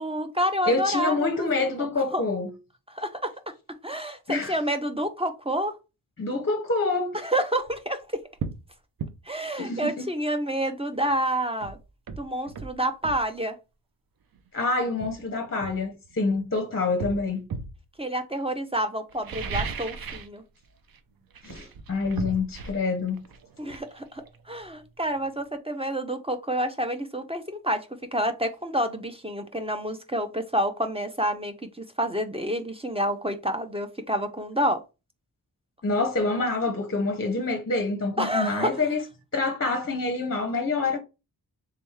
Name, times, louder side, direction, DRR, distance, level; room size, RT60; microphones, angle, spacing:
voice 1, 0.0-1.5 2.1-2.2 2.9-3.3 3.8-5.8 7.2-8.2 9.3-11.8 12.2-13.6 18.0-20.4 23.6-27.9 28.1-34.8 38.2-38.8, right 1 dB, 15° right, 0.5 m, -28 dB
voice 2, 0.7-2.5 4.3-4.5 6.2-7.2 9.6-10.1 14.5-17.5 21.4-23.2 35.8-39.0 39.3-41.0, left 3 dB, 35° left, 0.6 m, -27 dB
sound 1, 7.6-7.8 8.4-8.6 9.0-9.2 11.1-11.2 11.6-13.3 14.3-14.5 15.0-16.4 17.0-17.8 19.1-20.4 20.6-21.0 21.3-24.9 25.2-25.3, right 5 dB, 60° right, 0.6 m, -36 dB
3.4 x 3.4 x 3.1 m
wide cardioid pair, 110°, 39 cm